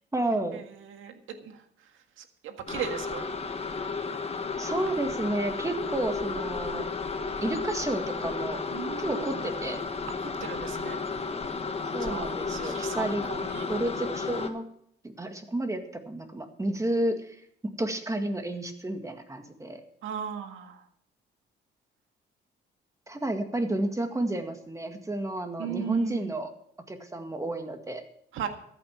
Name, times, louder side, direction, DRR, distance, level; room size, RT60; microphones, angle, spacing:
voice 1, 0.1-0.6 4.6-6.9 7.4-8.6 9.0-9.8 11.9-13.2 13.7-14.6 15.2-19.8 23.1-26.5 26.9-28.0, right 1 dB, 15° right, 6 dB, 2.0 m, -31 dB
voice 2, 2.4-3.2 8.7-9.3 10.4-11.0 12.0-13.7 20.0-20.8 25.6-26.3 28.3-28.5, right 8 dB, 80° right, 6 dB, 1.8 m, -36 dB
sound 1, 2.7-14.5, left 4 dB, 30° left, 1.4 m, -33 dB
14.0 x 9.1 x 6.0 m, 0.68 s
cardioid pair, 90°, 20 cm